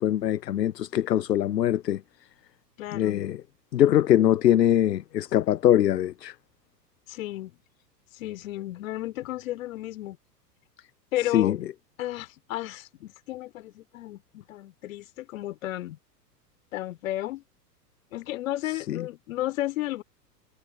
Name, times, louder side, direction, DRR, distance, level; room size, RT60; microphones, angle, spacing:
voice 1, 0.0-2.0 2.9-3.4 3.7-6.3 11.3-11.6 18.9-19.0, left 11 dB, 75° left, 0.6 m, -22 dB
voice 2, 2.8-3.2 7.1-7.6 8.1-10.2 11.1-11.6 12.0-16.0 16.7-17.4 18.1-20.0, left 15 dB, 50° left, 2.8 m, -33 dB
figure-of-eight pair, 100°, 49 cm